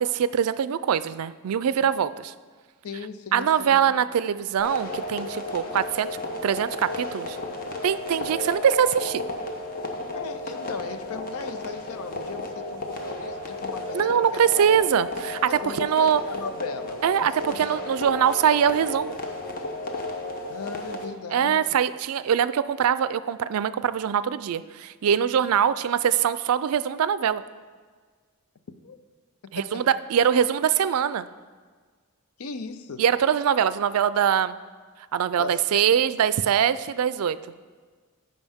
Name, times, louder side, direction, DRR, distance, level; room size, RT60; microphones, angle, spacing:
voice 1, 0.0-2.3 3.3-6.1 6.4-7.4 7.8-9.2 13.9-15.4 15.6-16.2 17.0-19.2 21.3-27.4 29.5-31.3 33.0-34.6 35.1-37.4, right 8 dB, 80° right, 15 dB, 0.4 m, -23 dB
voice 2, 2.8-4.1 10.1-14.8 15.5-17.0 20.5-21.8 28.8-29.0 29.6-29.9 32.4-33.0 35.4-35.8, left 4 dB, 80° left, 11 dB, 0.6 m, -37 dB
sound 1, 4.6-21.0, left 2 dB, 40° left, 0.9 m, -34 dB
14.5 x 5.2 x 3.5 m, 1.5 s
head